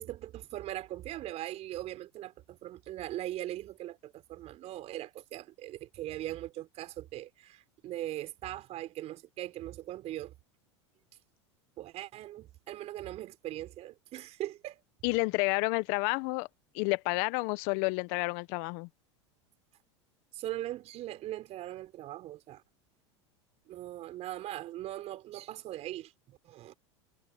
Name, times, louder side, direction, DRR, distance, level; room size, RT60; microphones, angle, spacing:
voice 1, 0.0-10.3 11.8-14.8 20.3-22.6 23.7-26.7, right 14 dB, 45° right, 4.1 m, -40 dB
voice 2, 15.0-16.5 16.7-18.9, left 26 dB, 60° left, 1.2 m, -30 dB
hypercardioid pair, 90°, 15 cm